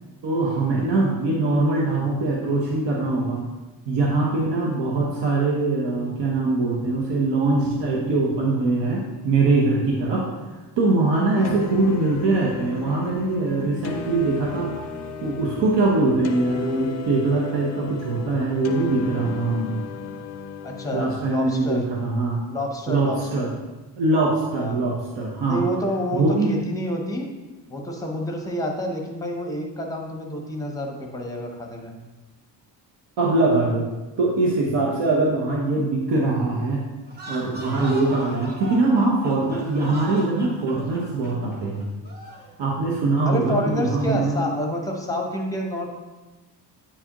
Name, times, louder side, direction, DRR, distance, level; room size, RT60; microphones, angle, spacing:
voice 1, 0.2-3.5 3.9-10.3 10.8-14.7 15.2-19.7 20.9-22.4 22.9-23.5 24.0-25.6 26.1-26.6 33.2-33.9 34.2-36.8 37.3-41.8 42.6-44.4, right 2 dB, 75° right, -2 dB, 1.1 m, -22 dB
sound 1, 11.4-21.0, left 5 dB, 40° left, 0.4 m, -35 dB
voice 2, 20.6-21.8 22.5-23.5 24.5-24.8 25.5-26.2 26.5-27.3 27.7-31.9 43.2-45.9, equal, 10° left, 1 dB, 0.7 m, -28 dB
sound 2, 37.1-42.5, right 1 dB, 20° right, 1.0 m, -38 dB
8.7 x 4.8 x 2.9 m, 1.2 s
cardioid pair, 175°, 44 cm